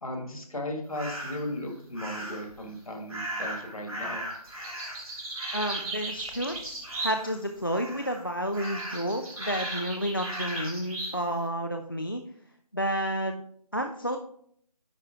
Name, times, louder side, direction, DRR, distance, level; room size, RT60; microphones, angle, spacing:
voice 1, 0.0-4.3, left 1 dB, 60° left, 4 dB, 1.6 m, -36 dB
sound 1, 0.9-1.5 2.0-2.5 3.1-7.4 7.7-8.2 8.5-11.2, right 1 dB, 60° right, 3.3 m, -36 dB
voice 2, 5.5-12.2 12.7-13.4 13.7-14.2, equal, 35° left, 5 dB, 0.4 m, -31 dB
9.8 x 4.3 x 3.6 m, 0.65 s
figure-of-eight pair, 165°, 21 cm